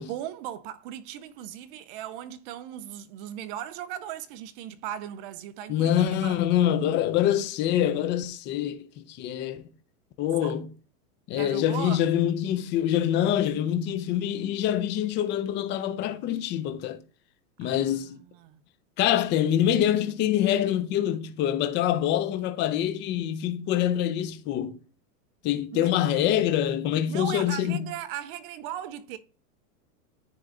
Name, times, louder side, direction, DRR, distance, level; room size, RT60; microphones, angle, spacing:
voice 1, 0.0-6.4 10.4-10.5 11.3-12.1 17.6-18.6 25.7-25.9 27.1-29.2, right 11 dB, 40° right, 0.5 m, -38 dB
voice 2, 5.7-9.6 10.2-10.7 11.3-17.0 17.6-18.2 19.0-24.8 25.4-27.8, left 11 dB, 25° left, 0.6 m, -25 dB
9.8 x 3.6 x 3.7 m
supercardioid pair, 145°, 44 cm